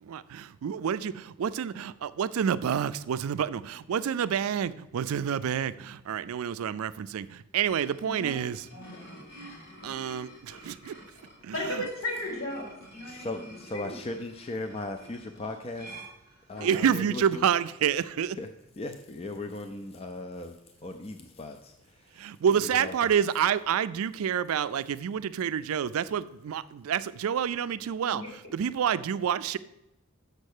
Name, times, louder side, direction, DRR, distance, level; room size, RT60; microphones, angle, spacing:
voice 1, 0.0-8.7 9.8-11.0 11.4-11.8 16.6-18.4 22.1-28.2 28.5-29.6, right 8 dB, 85° right, 0.4 m, -28 dB
sound 1, 7.6-16.9, right 1 dB, 55° left, 2.1 m, -50 dB
voice 2, 8.0-8.3 8.7-9.6 11.5-13.4 13.7-13.9 16.5-16.7 28.0-28.3, left 1 dB, 75° left, 3.2 m, -36 dB
voice 3, 13.0-16.0 16.5-17.4 18.4-18.5 18.8-23.1, left 2 dB, 30° left, 0.4 m, -38 dB
6.6 x 5.3 x 6.5 m
head